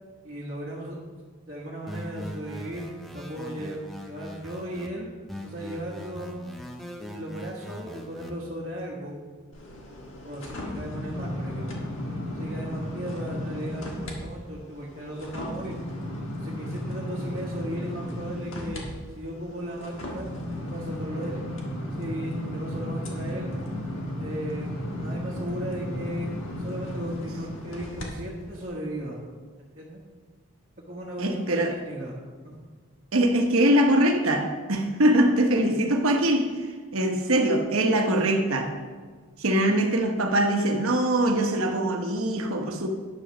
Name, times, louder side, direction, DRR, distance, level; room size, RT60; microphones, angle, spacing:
voice 1, 0.2-0.9 1.5-2.9 3.1-5.1 5.4-6.4 7.1-9.2 10.2-11.9 12.3-15.8 16.4-18.9 19.1-20.3 20.7-21.4 22.0-23.5 24.2-24.7 25.0-26.3 26.6-29.2 29.7-30.0 30.9-32.5, right 1 dB, 35° right, -7 dB, 1.3 m, -36 dB
sound 1, 1.9-4.9 5.3-8.3, equal, ahead, 0.6 m, -40 dB
sound 2, 9.5-14.2 14.6-28.1 28.5-28.7, left 1 dB, 60° left, 1.5 m, -34 dB
voice 2, 31.2-31.8 33.1-38.7 39.4-42.9, right 1 dB, 70° right, 4 dB, 1.1 m, -23 dB
9.5 x 5.1 x 6.1 m, 1.5 s
head